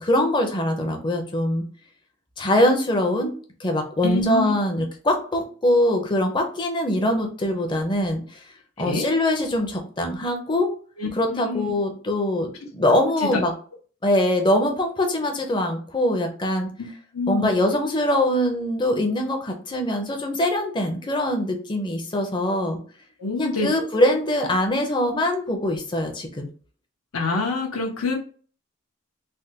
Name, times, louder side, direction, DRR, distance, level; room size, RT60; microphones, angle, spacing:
voice 1, 0.0-1.6 2.4-3.3 3.6-8.4 8.8-10.7 11.2-13.5 14.0-16.7 17.3-22.8 23.4-26.5, left 1 dB, 20° left, 3 dB, 0.5 m, -23 dB
voice 2, 4.0-4.5 8.8-9.0 11.0-11.7 12.9-13.4 16.8-16.9 17.1-17.5 23.2-24.0 27.1-28.2, left 3 dB, 85° left, 0 dB, 0.7 m, -26 dB
3.3 x 2.2 x 2.8 m, 0.42 s
head